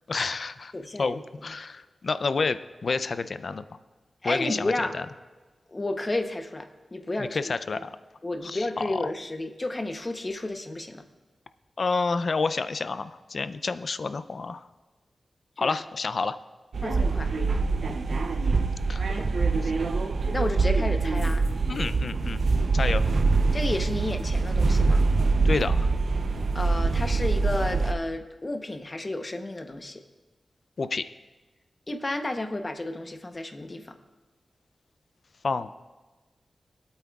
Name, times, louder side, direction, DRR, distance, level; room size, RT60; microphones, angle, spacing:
voice 1, 0.1-0.7 1.0-3.6 4.2-5.1 7.2-8.0 8.4-9.0 11.8-14.7 15.6-16.4 18.9-19.1 19.6-19.7 21.7-22.4 22.7-23.0 25.4-25.9 30.8-31.0 35.4-35.9, left 4 dB, 55° left, 13 dB, 0.4 m, -29 dB
voice 2, 0.7-1.2 4.2-5.0 5.7-7.4 8.2-11.0 15.6-15.8 16.8-17.4 19.0-19.3 20.3-21.4 23.5-25.1 26.5-30.0 31.9-34.0, left 2 dB, 30° left, 7 dB, 0.8 m, -32 dB
sound 1, 16.7-27.9, right 3 dB, 70° right, 0.6 m, -24 dB
22.5 x 8.5 x 2.4 m, 1.2 s
wide cardioid pair, 100°, 0 cm